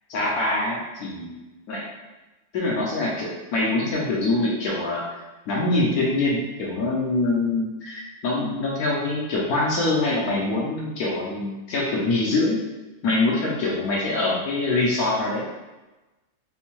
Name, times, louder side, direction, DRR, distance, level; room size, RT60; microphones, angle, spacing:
voice 1, 0.1-1.4 1.7-1.8 2.5-5.0 5.5-12.6 13.0-15.5, left 2 dB, 75° left, -4 dB, 0.9 m, -24 dB
4.3 x 2.1 x 2.9 m, 1.1 s
omnidirectional pair, 2.1 m